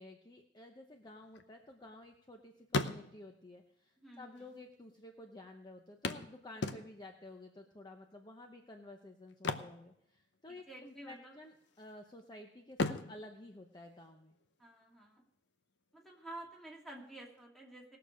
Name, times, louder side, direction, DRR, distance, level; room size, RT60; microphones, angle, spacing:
voice 1, 0.0-14.4, left 1 dB, 25° left, 4 dB, 0.8 m, -53 dB
sound 1, 1.0-2.3 2.6-3.5 4.4-4.5 4.7-4.8 6.0-7.2 9.3-10.6 10.9-11.1 11.6-12.2 12.7-14.5 16.4-16.5 17.0-17.1, left 3 dB, 65° left, 0.8 m, -38 dB
voice 2, 4.0-4.6 10.5-11.4 14.6-15.2 15.9-18.0, right 1 dB, ahead, -2 dB, 2.4 m, -51 dB
19.0 x 6.7 x 5.1 m, 0.73 s
head